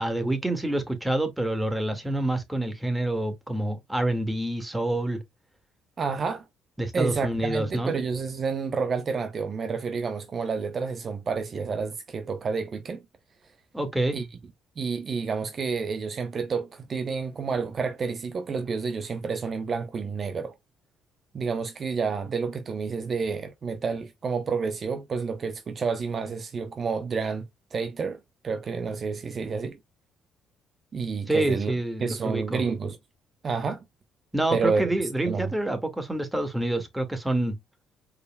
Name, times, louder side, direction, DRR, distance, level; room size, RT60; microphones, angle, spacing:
voice 1, 0.0-5.2 6.8-7.9 13.7-14.2 31.3-32.6 34.3-37.6, right 1 dB, 10° right, 2.0 m, -27 dB
voice 2, 6.0-6.4 6.9-13.0 14.1-14.3 14.8-20.5 21.3-29.8 30.9-31.7 32.0-33.0 33.4-33.8 34.5-34.9 35.3-35.5, right 5 dB, 45° right, 0.8 m, -29 dB
4.8 x 4.8 x 2.3 m
hypercardioid pair, 60°, 0 cm